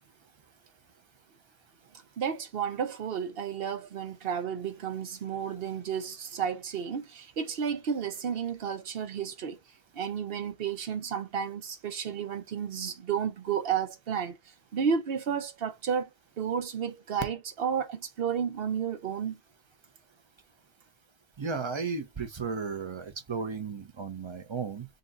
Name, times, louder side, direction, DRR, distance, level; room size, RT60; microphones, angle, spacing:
voice 1, 2.2-9.6 9.9-14.4 14.7-16.1 16.4-19.4, right 7 dB, 65° right, 0.9 m, -32 dB
voice 2, 21.4-24.9, right 5 dB, 30° right, 0.6 m, -34 dB
3.9 x 2.4 x 3.9 m
omnidirectional pair, 1.1 m